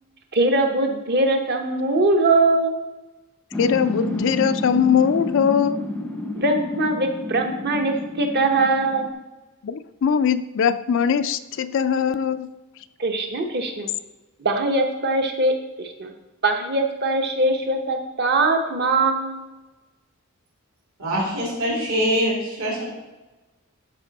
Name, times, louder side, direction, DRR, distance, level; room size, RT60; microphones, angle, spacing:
voice 1, 0.3-2.8 6.3-9.1 13.0-13.9 14.4-16.1 16.4-19.4, right 2 dB, 45° right, 4 dB, 1.0 m, -21 dB
sound 1, 3.5-9.1, left 1 dB, 5° left, 0.6 m, -30 dB
voice 2, 3.6-5.8 9.6-12.5, left 7 dB, 55° left, 11 dB, 0.3 m, -21 dB
voice 3, 21.0-23.0, equal, 65° right, -4 dB, 2.8 m, -24 dB
12.0 x 5.0 x 4.1 m, 1.1 s
head